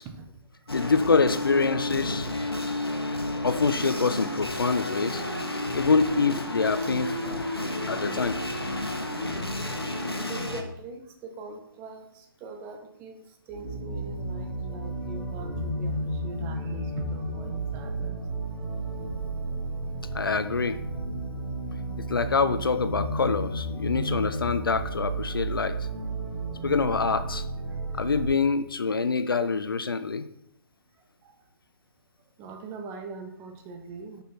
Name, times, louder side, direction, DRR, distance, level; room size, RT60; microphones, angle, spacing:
voice 1, 0.0-0.9 7.5-8.5 10.3-18.2 24.2-25.2 27.7-28.0 29.4-29.5 31.0-31.4 32.4-34.2, right 3 dB, 20° right, 5 dB, 1.0 m, -43 dB
sound 1, 0.7-10.6, left 1 dB, 90° left, 1.5 m, -31 dB
voice 2, 0.7-2.3 3.4-5.2 5.7-7.4 7.8-8.4 20.1-20.8 22.1-25.8 26.6-27.4 27.9-30.2, left 4 dB, 65° left, 12 dB, 0.7 m, -25 dB
sound 2, 13.5-28.2, right 1 dB, ahead, 3.9 m, -33 dB
9.3 x 5.8 x 4.3 m, 0.74 s
figure-of-eight pair, 140°, 12 cm